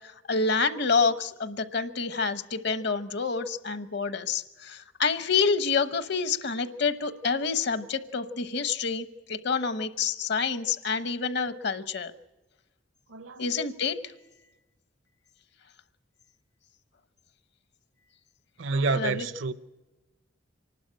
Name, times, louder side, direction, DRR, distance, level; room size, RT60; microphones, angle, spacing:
voice 1, 0.3-12.1 13.4-14.0 18.9-19.3, left 5 dB, 60° left, 0.9 m, -28 dB
voice 2, 13.1-13.7 18.6-19.5, right 3 dB, 80° right, 0.8 m, -29 dB
26.0 x 12.0 x 8.7 m
head